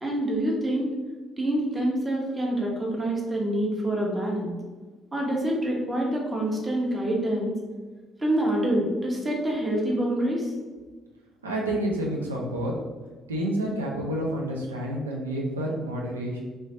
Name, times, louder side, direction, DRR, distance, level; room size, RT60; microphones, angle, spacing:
voice 1, 0.0-0.9 1.4-4.6 5.1-7.5 8.2-10.5, right 1 dB, 25° right, -2 dB, 0.9 m, -26 dB
voice 2, 11.4-12.7 13.3-16.4, right 1 dB, 80° right, -2 dB, 0.5 m, -29 dB
3.2 x 3.0 x 2.7 m, 1.3 s
figure-of-eight pair, 45°, 0 cm